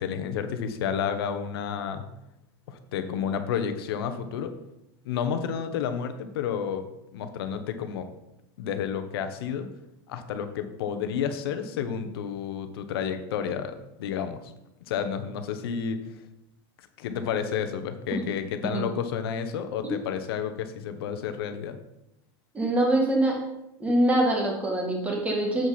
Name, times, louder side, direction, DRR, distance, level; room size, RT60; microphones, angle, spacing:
voice 1, 0.0-2.1 2.7-4.5 5.0-6.8 7.1-8.1 8.6-9.7 10.1-14.5 14.9-16.2 17.0-21.8, left 7 dB, 80° left, 8 dB, 1.2 m, -31 dB
voice 2, 22.5-23.4 23.8-25.7, right 1 dB, 10° right, -1 dB, 2.1 m, -24 dB
7.8 x 7.4 x 4.2 m, 0.88 s
supercardioid pair, 145°, 13 cm